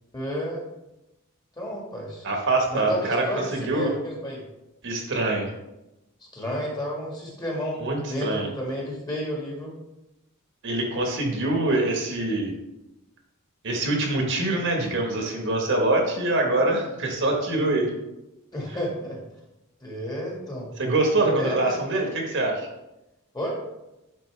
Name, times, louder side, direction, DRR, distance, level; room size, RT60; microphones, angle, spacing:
voice 1, 0.1-0.6 1.6-2.2 2.7-4.4 6.3-7.8 8.1-9.7 18.5-19.2 19.8-20.7 21.4-22.0 23.3-23.6, equal, 20° left, -2 dB, 1.6 m, -31 dB
voice 2, 2.2-3.9 4.8-5.5 7.8-8.5 10.6-12.5 13.6-17.9 20.8-22.7, right 2 dB, 60° right, 1 dB, 1.3 m, -24 dB
9.4 x 4.2 x 3.3 m, 0.95 s
head